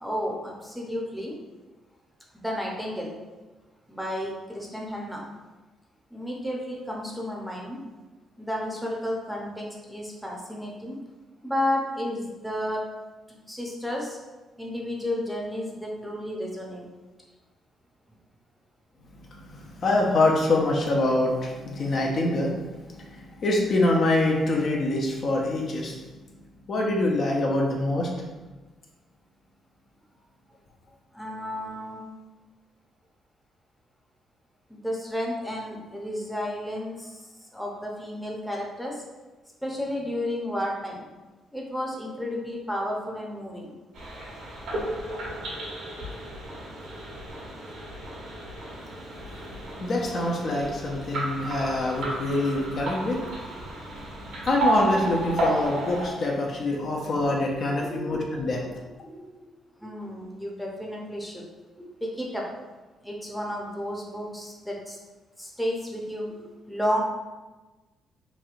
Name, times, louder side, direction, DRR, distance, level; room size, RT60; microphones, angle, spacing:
voice 1, 0.0-1.4 2.3-3.1 3.9-5.2 6.1-7.8 8.4-11.0 11.4-12.9 13.5-14.2 14.6-16.9 31.1-32.0 34.7-37.2 37.5-39.0 39.6-41.1 41.5-43.7 53.2-53.6 57.7-58.4 59.0-59.3 59.8-61.4 61.8-62.5 63.0-65.0 65.4-67.0, left 1 dB, ahead, -2 dB, 0.6 m, -32 dB
voice 2, 19.4-26.0 26.7-28.1 49.8-53.5 54.4-58.6, left 2 dB, 55° left, -1 dB, 0.5 m, -25 dB
sound 1, 43.9-56.1, right 2 dB, 80° right, 1.0 m, -32 dB
3.0 x 2.7 x 2.4 m, 1.2 s
cardioid pair, 90°, 0 cm